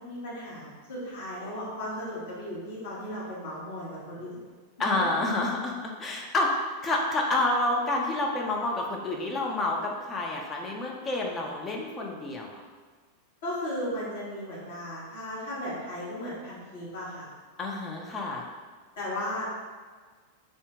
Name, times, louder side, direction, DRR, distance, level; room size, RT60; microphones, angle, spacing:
voice 1, 0.0-4.4 13.4-17.3 19.0-19.4, left 1 dB, 60° left, -8 dB, 1.1 m, -36 dB
voice 2, 4.8-6.5 6.8-12.5 17.6-18.5, left 2 dB, 20° left, 0 dB, 0.4 m, -29 dB
2.6 x 2.1 x 3.5 m, 1.5 s
figure-of-eight pair, 90°, 0 cm